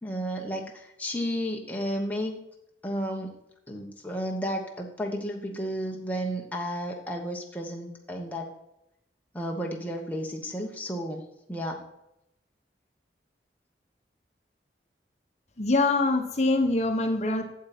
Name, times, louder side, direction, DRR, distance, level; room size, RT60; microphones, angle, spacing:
voice 1, 0.0-2.3 2.8-3.3 3.7-8.5 9.3-11.8, equal, 10° left, 0 dB, 1.1 m, -32 dB
voice 2, 15.6-17.4, left 2 dB, 40° left, 4 dB, 1.0 m, -24 dB
8.6 x 7.3 x 4.3 m, 0.82 s
head